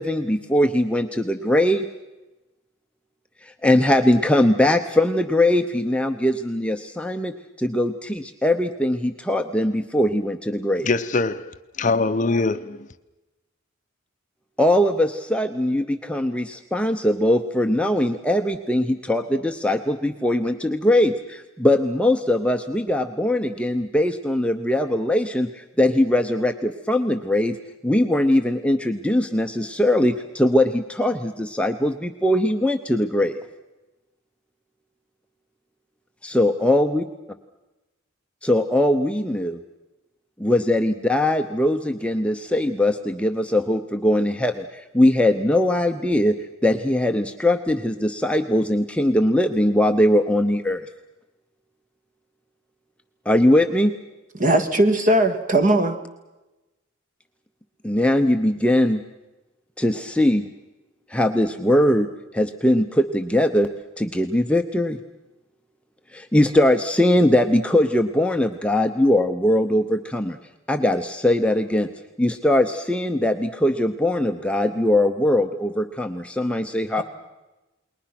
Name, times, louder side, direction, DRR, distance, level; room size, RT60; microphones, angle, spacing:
voice 1, 0.0-1.9 3.4-10.9 14.6-27.6 27.8-33.4 36.2-37.0 38.4-39.6 40.4-46.4 46.6-50.8 53.3-53.9 57.8-59.0 59.8-60.5 61.1-62.1 62.3-63.7 64.0-65.0 66.1-70.4 70.7-71.9 72.2-77.0, left 1 dB, 5° left, 0.8 m, -21 dB
voice 2, 10.8-12.9, left 3 dB, 35° left, 0.7 m, -23 dB
voice 3, 54.4-56.0 77.0-77.1, right 1 dB, 35° right, 2.0 m, -19 dB
29.0 x 21.5 x 6.0 m
head